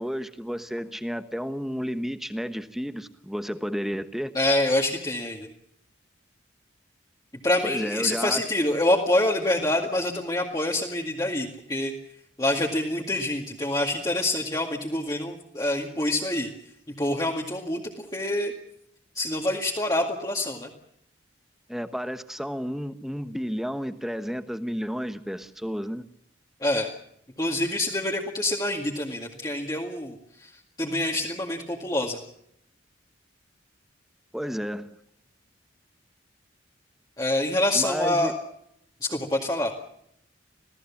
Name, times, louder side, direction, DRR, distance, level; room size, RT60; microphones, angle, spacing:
voice 1, 0.0-4.3 7.6-8.4 21.7-26.0 34.3-34.9 37.7-38.3, equal, ahead, 10 dB, 1.2 m, -31 dB
voice 2, 4.3-5.5 7.4-11.9 12.4-16.5 17.0-18.5 19.1-20.7 26.6-26.9 27.4-30.5 30.8-32.2 37.2-38.3 39.0-39.7, left 1 dB, 20° left, -1 dB, 2.1 m, -26 dB
27.0 x 17.5 x 7.3 m, 0.73 s
head